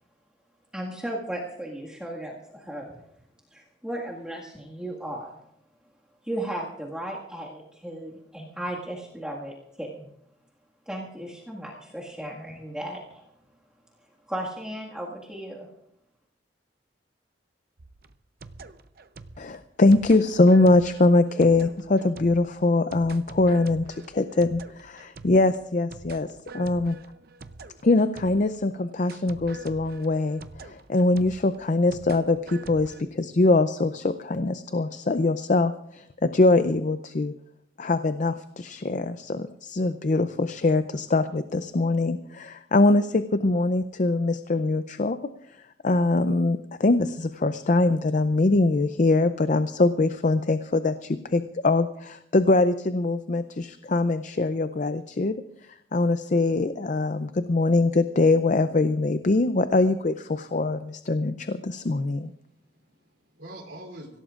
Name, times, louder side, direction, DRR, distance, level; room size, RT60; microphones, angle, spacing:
voice 1, 0.7-3.0 3.5-5.4 6.2-10.1 10.9-13.3 14.3-15.7, right 1 dB, 5° right, -4 dB, 1.8 m, -35 dB
sound 1, 17.8-28.7 29.1-33.0, right 3 dB, 55° right, 0.7 m, -45 dB
voice 2, 19.4-26.3 26.5-27.0 27.8-36.0 36.3-37.3 37.8-45.2 45.8-55.3 55.9-62.3, left 2 dB, 45° left, 10 dB, 0.5 m, -23 dB
voice 3, 61.9-64.2, right 1 dB, 80° right, 1 dB, 3.4 m, -46 dB
25.5 x 16.5 x 2.5 m, 0.73 s
head